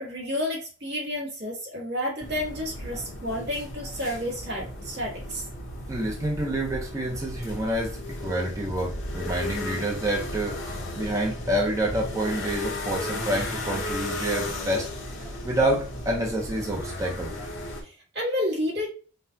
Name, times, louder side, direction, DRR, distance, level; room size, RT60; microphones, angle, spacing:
voice 1, 0.0-5.4 17.8-18.9, left 1 dB, 55° right, -5 dB, 1.7 m, -30 dB
sound 1, 2.2-17.8, left 1 dB, 85° left, 1.4 m, -35 dB
voice 2, 5.9-10.6 10.9-14.9 15.2-17.5, right 1 dB, 15° right, -2 dB, 0.8 m, -28 dB
5.4 x 2.4 x 2.8 m, 0.37 s
head